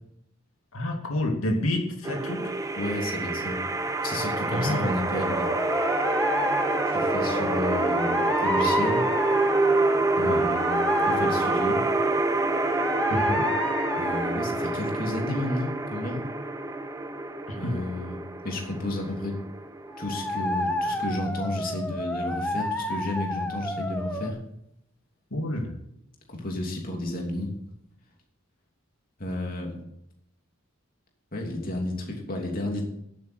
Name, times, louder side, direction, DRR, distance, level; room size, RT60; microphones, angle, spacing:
voice 1, 0.7-2.5 4.5-4.9 10.2-10.4 13.1-13.5 17.5-17.8 25.3-25.7, left 1 dB, 90° left, 1 dB, 2.6 m, -29 dB
sound 1, 2.0-21.0, right 2 dB, 15° right, 0.8 m, -27 dB
voice 2, 2.8-3.6 4.0-5.5 6.8-8.2 8.4-9.0 10.1-11.8 14.0-16.3 17.5-19.4 20.0-24.4 26.3-27.5 29.2-29.8 31.3-32.8, left 1 dB, 45° left, 1 dB, 3.0 m, -32 dB
sound 2, 5.2-15.0 19.9-24.3, left 1 dB, 5° left, 1.2 m, -30 dB
10.5 x 8.9 x 8.1 m, 0.76 s
head